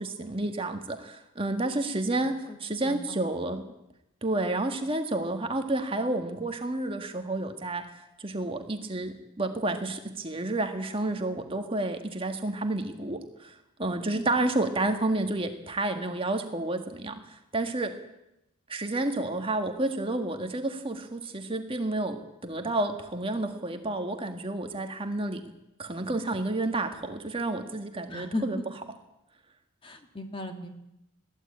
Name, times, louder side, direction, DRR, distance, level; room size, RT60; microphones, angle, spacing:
voice 1, 0.0-3.6 4.2-18.0 18.7-25.4 25.8-28.6, right 2 dB, 25° right, 5 dB, 1.7 m, -30 dB
voice 2, 2.5-3.2 14.1-14.3 28.1-28.4 29.8-30.8, left 1 dB, 25° left, 5 dB, 2.0 m, -36 dB
21.5 x 15.5 x 8.6 m, 0.87 s
head